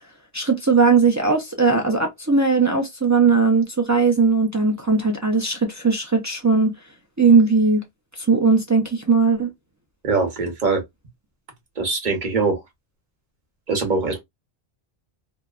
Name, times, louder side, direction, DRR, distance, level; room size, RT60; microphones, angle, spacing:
voice 1, 0.3-6.7 7.2-7.8 8.2-9.5, right 4 dB, 30° right, 0.3 m, -18 dB
voice 2, 10.0-10.8 11.8-12.6 13.7-14.2, right 4 dB, 50° right, 1.0 m, -22 dB
2.7 x 2.1 x 2.3 m
omnidirectional pair, 1.1 m